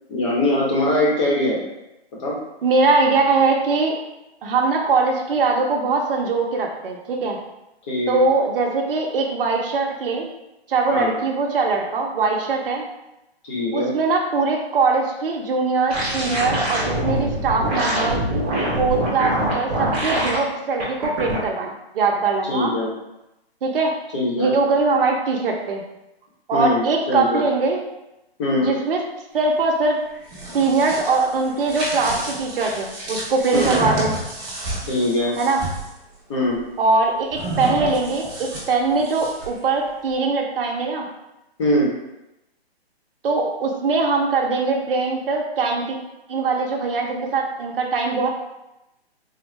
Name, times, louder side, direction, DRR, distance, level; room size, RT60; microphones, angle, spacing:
voice 1, 0.1-1.6 2.2-2.4 7.9-8.2 10.9-11.1 13.4-13.9 22.5-22.9 24.1-24.5 26.5-27.4 28.4-28.7 33.5-33.8 34.9-35.3 36.3-36.6 41.6-41.9, left 1 dB, 30° left, -4 dB, 0.8 m, -21 dB
voice 2, 2.6-4.0 4.4-7.4 8.1-10.3 10.7-12.9 13.7-18.2 18.8-22.7 23.6-23.9 24.4-25.8 26.5-27.8 28.6-29.0 29.3-30.0 30.5-34.1 35.4-35.6 36.8-41.1 43.2-46.0 46.3-48.3, right 3 dB, 60° right, 1 dB, 0.6 m, -21 dB
sound 1, 15.9-20.4 20.8-21.4, right 1 dB, 10° right, 0.4 m, -23 dB
sound 2, 30.1-35.9 37.3-39.6, right 1 dB, 25° right, 0.9 m, -30 dB
3.8 x 2.1 x 3.1 m, 0.93 s
hypercardioid pair, 155°, 32 cm